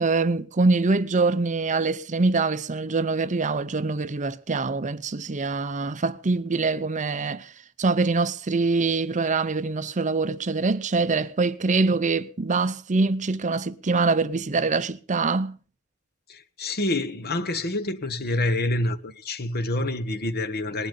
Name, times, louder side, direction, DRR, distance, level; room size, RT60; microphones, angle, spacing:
voice 1, 0.0-7.5 7.8-15.6, right 3 dB, 35° right, 0.6 m, -24 dB
voice 2, 16.3-20.9, left 2 dB, 45° left, 1.2 m, -27 dB
19.5 x 11.5 x 5.3 m
head